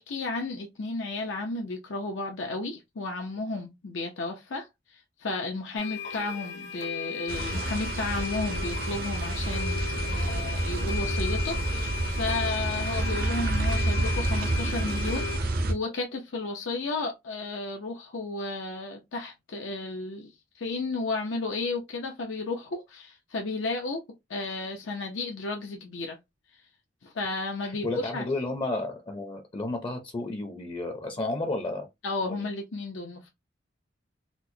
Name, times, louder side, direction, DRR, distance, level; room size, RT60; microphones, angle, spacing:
voice 1, 0.0-24.0 24.3-26.2 27.0-28.3 32.0-33.3, left 3 dB, 85° left, 0.6 m, -33 dB
sound 1, 5.8-15.4, left 7 dB, 65° left, 1.2 m, -36 dB
sound 2, 7.3-15.7, right 2 dB, 55° right, 0.6 m, -29 dB
voice 2, 27.6-31.9 32.3-32.5, left 2 dB, 25° left, 0.5 m, -32 dB
4.3 x 2.1 x 2.7 m
head